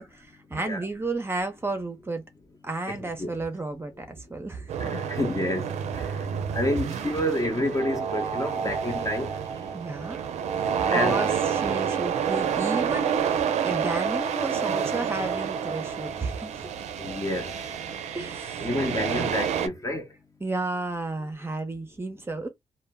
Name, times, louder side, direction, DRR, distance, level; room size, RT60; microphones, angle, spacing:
voice 1, 0.0-2.2 2.6-4.7 9.7-10.2 10.5-16.7 18.1-18.8 20.4-22.5, right 2 dB, 20° right, 0.6 m, -32 dB
voice 2, 0.5-0.8 2.9-3.3 4.8-6.3 6.5-9.4 10.9-11.3 17.0-17.9 18.6-20.1, left 1 dB, 30° left, 0.8 m, -29 dB
sound 1, 4.7-19.7, right 7 dB, 80° right, 0.4 m, -29 dB
2.1 x 2.1 x 3.3 m
cardioid pair, 60°, 11 cm